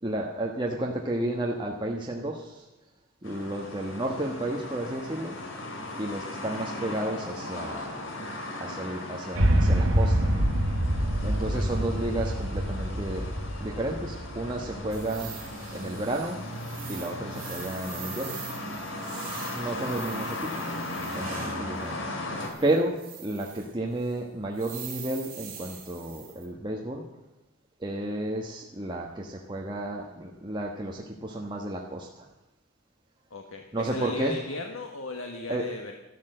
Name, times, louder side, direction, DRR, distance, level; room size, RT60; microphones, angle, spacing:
voice 1, 0.0-2.7 3.2-5.4 6.0-8.1 8.6-10.5 11.2-13.3 13.6-15.3 15.7-16.4 16.9-18.4 19.5-20.6 21.1-27.0 27.8-32.3 33.7-34.5 35.5-35.7, right 1 dB, 20° right, 0 dB, 1.3 m, -32 dB
sound 1, 3.2-22.5, left 1 dB, 65° left, 2.7 m, -37 dB
sound 2, 9.4-15.5, equal, 80° right, 1.8 m, -26 dB
sound 3, 14.9-21.7 22.4-23.7 24.0-24.1 24.5-26.5, right 9 dB, 45° right, 3.4 m, -44 dB
voice 2, 22.4-22.7 33.3-35.9, left 2 dB, 85° left, 3 dB, 1.4 m, -37 dB
13.5 x 12.0 x 7.7 m, 1.0 s
head